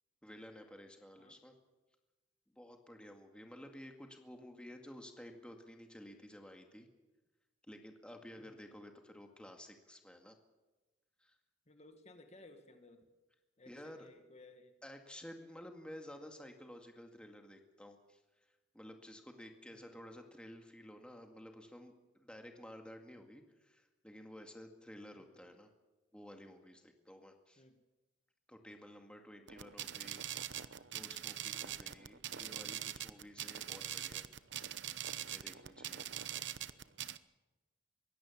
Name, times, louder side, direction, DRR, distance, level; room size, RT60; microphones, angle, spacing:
voice 1, 0.2-1.5 2.5-6.9 7.6-10.4 11.2-11.4 13.7-14.1 14.8-18.2 18.7-25.7 26.1-27.6 28.5-34.3 35.3-36.1, equal, 5° left, 4 dB, 2.1 m, -53 dB
voice 2, 11.7-13.1 13.6-14.7 19.7-19.9 25.1-25.6 27.6-27.8, left 2 dB, 35° left, 6 dB, 1.9 m, -59 dB
sound 1, 29.5-37.2, right 11 dB, 65° right, 0.9 m, -43 dB
22.5 x 17.0 x 7.3 m, 1.1 s
head